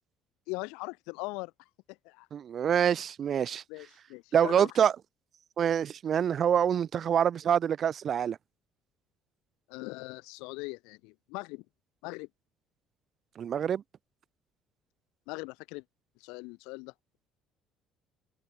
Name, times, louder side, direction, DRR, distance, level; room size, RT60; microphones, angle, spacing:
voice 1, 0.5-1.5 1.9-2.3 3.7-4.7 9.7-11.6 12.0-12.3 15.3-15.8 16.2-16.9, left 27 dB, 85° left, 4.7 m, -40 dB
voice 2, 2.3-3.6 4.3-4.9 5.6-8.4 13.4-13.8, right 8 dB, 45° right, 1.3 m, -26 dB
cardioid pair, 110°, 0 cm